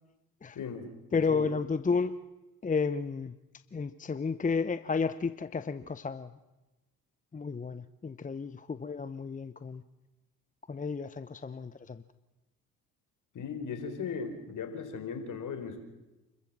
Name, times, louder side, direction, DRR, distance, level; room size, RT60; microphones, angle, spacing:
voice 1, 0.5-1.5 13.3-15.8, left 6 dB, 55° left, 7 dB, 4.4 m, -38 dB
voice 2, 1.1-2.2 2.6-3.3 3.7-6.3 7.3-9.8 10.7-12.0, left 5 dB, 20° left, 13 dB, 0.8 m, -32 dB
29.0 x 14.0 x 7.5 m, 1.1 s
supercardioid pair, 65°, 37 cm